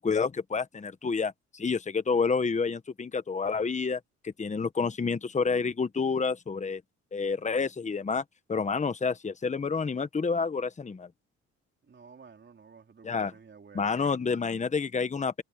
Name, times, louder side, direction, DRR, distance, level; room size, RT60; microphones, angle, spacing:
voice 1, 0.0-6.8 7.1-8.2 8.5-11.1 13.0-13.3 13.7-15.4, left 5 dB, 25° left, 1.1 m, -29 dB
voice 2, 11.9-14.2, right 5 dB, 40° right, 4.0 m, -52 dB
cardioid pair, 90°, 30 cm